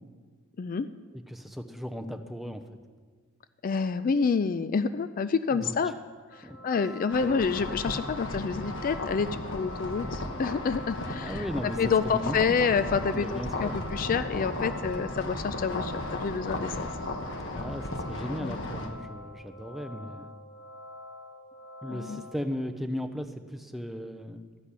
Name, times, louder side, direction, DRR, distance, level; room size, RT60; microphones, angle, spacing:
voice 1, 0.6-0.9 3.6-5.9 6.3-11.5 11.8-16.9 18.3-18.6 21.9-22.2, left 5 dB, 40° left, 12 dB, 0.3 m, -28 dB
voice 2, 1.3-2.7 5.5-5.8 6.4-6.6 11.2-11.8 12.0-12.4 13.1-13.7 17.4-20.3 21.8-24.7, equal, ahead, 6 dB, 0.6 m, -36 dB
sound 1, 6.3-22.4, left 1 dB, 85° left, 2.4 m, -47 dB
sound 2, 7.1-18.9, left 1 dB, 60° left, 1.3 m, -35 dB
13.0 x 5.9 x 8.3 m, 1.5 s
head